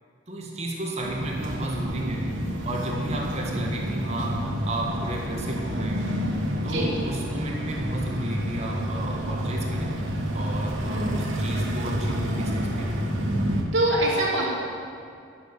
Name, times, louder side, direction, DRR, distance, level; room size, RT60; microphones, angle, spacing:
voice 1, 0.3-2.3 2.6-6.1 6.6-9.9 10.3-13.2, right 1 dB, 35° right, -2 dB, 1.6 m, -33 dB
sound 1, 1.0-13.6, equal, 85° right, 1.5 m, -29 dB
voice 2, 6.6-6.9 10.9-11.3 13.7-14.5, right 1 dB, 65° right, -4 dB, 2.6 m, -25 dB
11.5 x 7.0 x 6.6 m, 2.3 s
head